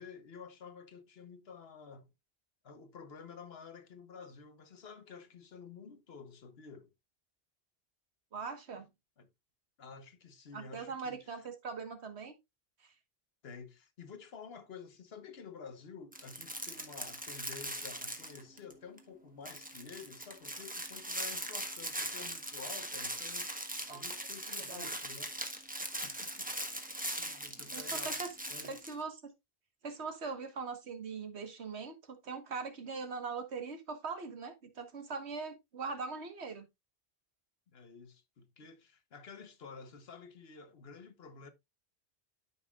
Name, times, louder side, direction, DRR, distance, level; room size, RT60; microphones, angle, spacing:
voice 1, 0.0-2.1 2.6-6.9 9.2-9.3 9.8-11.5 13.4-23.6 23.9-25.6 26.0-26.5 26.8-28.2 28.5-28.8 37.7-41.5, left 5 dB, 70° left, 1.3 m, -51 dB
voice 2, 8.3-8.9 10.5-12.3 12.8-12.9 23.9-24.0 24.6-24.9 27.2-27.4 27.7-28.3 28.6-29.3 29.8-36.7, right 4 dB, 85° right, 1.7 m, -41 dB
sound 1, 16.1-18.7 19.0-19.1 19.4-28.9, right 1 dB, 10° right, 1.2 m, -40 dB
12.5 x 5.5 x 2.4 m
omnidirectional pair, 1.1 m